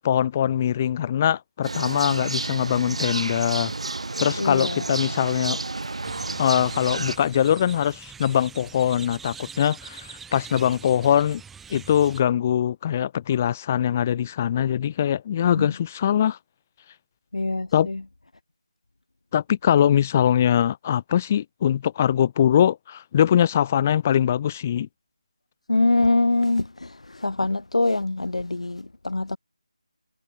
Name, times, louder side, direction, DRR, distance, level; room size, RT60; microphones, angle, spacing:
voice 1, 0.0-3.7 4.2-5.6 6.4-11.4 11.7-16.4 17.7-17.9 19.3-24.9, left 9 dB, 20° left, 1.0 m, -22 dB
sound 1, 1.6-7.2, right 3 dB, 60° right, 0.9 m, -30 dB
voice 2, 4.4-4.8 15.5-15.7 17.3-18.0 25.7-29.4, left 2 dB, 70° left, 2.1 m, -24 dB
sound 2, 6.0-12.2, right 6 dB, 5° right, 2.4 m, -43 dB
figure-of-eight pair, 165°, 4 cm